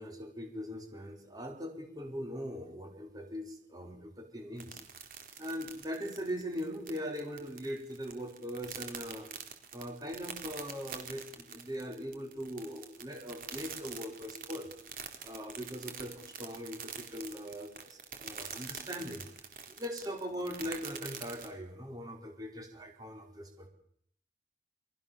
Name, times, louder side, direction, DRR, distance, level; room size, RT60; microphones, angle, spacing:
voice 1, 0.0-4.8 5.4-9.3 9.7-14.7 15.2-19.2 19.7-23.7, equal, 20° right, 4 dB, 4.7 m, -41 dB
sound 1, 4.6-21.5, right 7 dB, 50° right, 4.1 m, -45 dB
29.5 x 24.0 x 7.2 m, 0.68 s
head